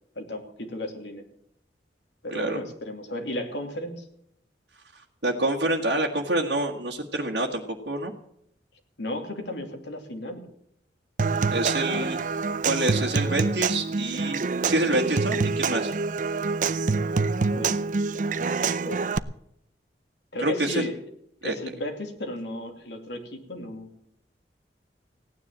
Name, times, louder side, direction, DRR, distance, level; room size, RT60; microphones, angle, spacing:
voice 1, 0.1-1.2 2.2-4.1 9.0-10.4 17.5-17.8 18.4-19.1 20.3-21.0 21.4-23.9, left 1 dB, 80° left, 4 dB, 2.7 m, -34 dB
voice 2, 4.9-8.1 11.5-12.2 12.6-15.9 20.4-20.9 21.4-21.5, right 1 dB, 80° right, -1 dB, 1.7 m, -27 dB
Human voice / Acoustic guitar / Percussion, 11.2-19.2, right 4 dB, 45° right, 0.5 m, -26 dB
17.0 x 9.8 x 7.4 m, 0.73 s
head